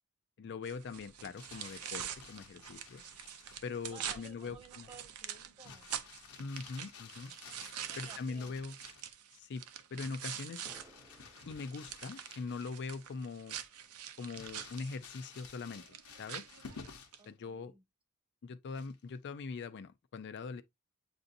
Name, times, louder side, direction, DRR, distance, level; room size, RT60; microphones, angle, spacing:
voice 1, 0.4-3.0 3.6-4.9 6.4-7.3 8.0-8.7 9.3-9.6 9.9-10.7 11.5-13.6 14.2-15.8 16.2-16.5 17.3-17.7 18.4-20.6, left 4 dB, 50° left, 0.4 m, -42 dB
sound 1, 0.6-10.8 11.2-17.2, right 9 dB, 85° right, 0.6 m, -45 dB
Crumpling crinkling, 1.1-3.7 5.6-9.2 10.6-13.0 13.4-13.5 14.3-17.3 18.7-19.2, left 5 dB, 80° left, 0.9 m, -54 dB
voice 2, 3.9-5.9 7.9-8.5 17.2-17.8, right 3 dB, 25° right, 1.1 m, -56 dB
sound 2, 10.2-16.0, right 2 dB, 10° right, 0.5 m, -66 dB
7.8 x 2.6 x 2.6 m
head